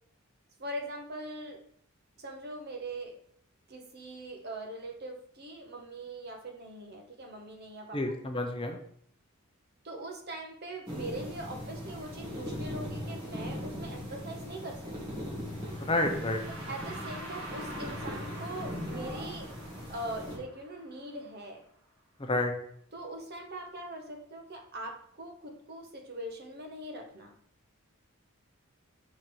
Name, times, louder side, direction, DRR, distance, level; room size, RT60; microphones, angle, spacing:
voice 1, 0.6-1.6 2.2-3.1 3.7-8.0 9.8-15.2 16.7-19.5 19.9-21.6 22.9-27.3, right 1 dB, 50° right, 2 dB, 1.1 m, -42 dB
voice 2, 7.9-8.8 15.8-16.4 22.2-22.5, left 2 dB, 25° left, 4 dB, 0.7 m, -29 dB
sound 1, 10.9-20.4, equal, 20° right, 2.1 m, -39 dB
sound 2, 15.5-21.5, right 1 dB, 70° right, 1.7 m, -47 dB
5.2 x 4.6 x 4.5 m, 0.64 s
head